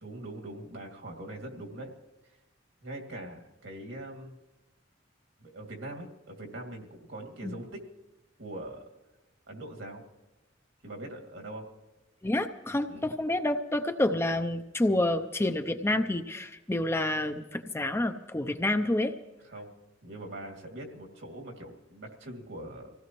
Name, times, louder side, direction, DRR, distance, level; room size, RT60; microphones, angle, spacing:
voice 1, 0.0-1.9 2.8-4.3 5.4-7.8 8.4-8.8 9.5-10.0 10.8-11.7 12.9-13.1 19.5-19.7 20.0-22.9, right 1 dB, 75° right, 1 dB, 2.4 m, -42 dB
voice 2, 12.2-19.1, left 1 dB, 15° left, 8 dB, 0.5 m, -28 dB
24.5 x 16.5 x 3.1 m, 1.1 s
head